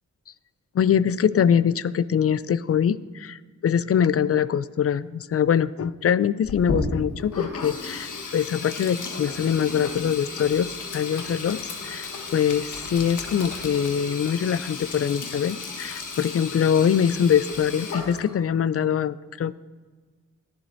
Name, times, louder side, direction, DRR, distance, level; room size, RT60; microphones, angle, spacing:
voice 1, 0.7-19.6, left 8 dB, 45° left, 18 dB, 0.4 m, -23 dB
Sink (filling or washing), 6.4-18.5, left 3 dB, 65° left, 1.4 m, -34 dB
17.5 x 7.9 x 2.7 m, 1.4 s
supercardioid pair, 45°, 33 cm